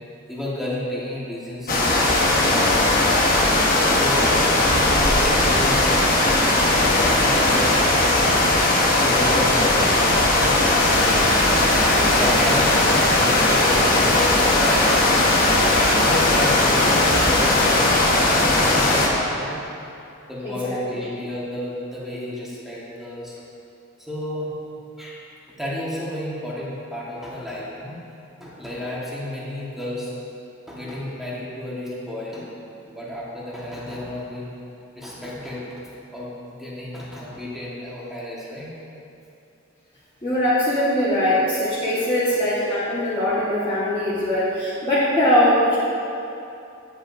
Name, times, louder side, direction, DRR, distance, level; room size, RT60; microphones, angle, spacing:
voice 1, 0.3-2.8 4.0-8.4 9.0-11.2 12.1-14.8 15.6-19.6 20.3-23.4 24.0-24.5 25.0-25.2 25.5-28.0 28.4-30.1 30.7-32.5 32.8-34.6 34.9-35.9 36.1-38.7, left 1 dB, ahead, -7 dB, 1.4 m, -32 dB
sound 1, 1.7-19.1, left 2 dB, 45° left, 1.0 m, -18 dB
sound 2, 10.8-18.0, left 2 dB, 70° left, 0.8 m, -26 dB
voice 2, 12.0-12.3 20.4-20.8 40.2-45.8, left 1 dB, 25° left, -13 dB, 1.4 m, -21 dB
9.9 x 7.8 x 2.6 m, 2.7 s
head